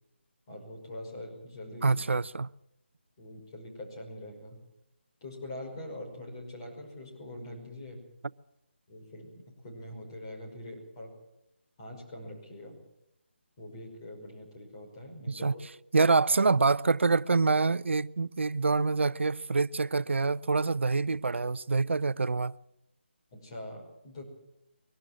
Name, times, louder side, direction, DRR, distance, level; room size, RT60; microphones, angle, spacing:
voice 1, 0.5-2.0 3.2-4.6 5.2-8.0 8.9-11.1 11.8-12.8 13.6-15.6 23.3-24.2, left 1 dB, 25° left, 5.5 m, -43 dB
voice 2, 1.8-2.5 15.3-15.5 15.9-22.5, right 4 dB, 75° right, 0.7 m, -26 dB
23.0 x 12.5 x 9.9 m
figure-of-eight pair, 170°, 6 cm